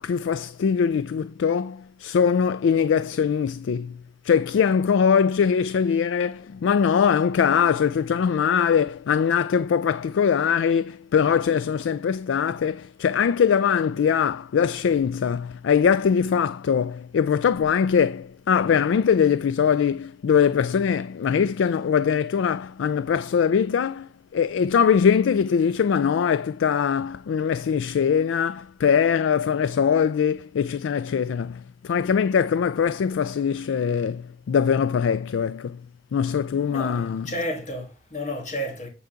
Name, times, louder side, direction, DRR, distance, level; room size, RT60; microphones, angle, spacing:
voice 1, 0.0-35.8 36.1-37.3, left 7 dB, 90° left, 0.3 m, -22 dB
voice 2, 36.7-38.9, equal, 40° left, 2.5 m, -31 dB
9.1 x 4.7 x 5.1 m
head